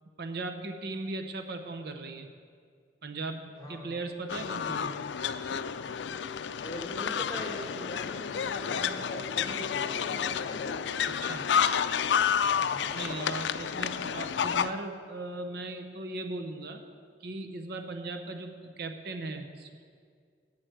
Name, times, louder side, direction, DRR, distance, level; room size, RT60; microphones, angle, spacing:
voice 1, 0.2-2.3 3.0-4.9 11.1-11.5 12.9-16.8 17.2-19.8, right 2 dB, 65° right, 6 dB, 0.7 m, -38 dB
voice 2, 3.5-3.9 6.6-10.7 12.6-13.0, left 1 dB, 20° left, -1 dB, 2.0 m, -41 dB
sound 1, 4.3-14.7, left 7 dB, 85° left, 0.4 m, -30 dB
8.8 x 8.0 x 7.8 m, 2.1 s
head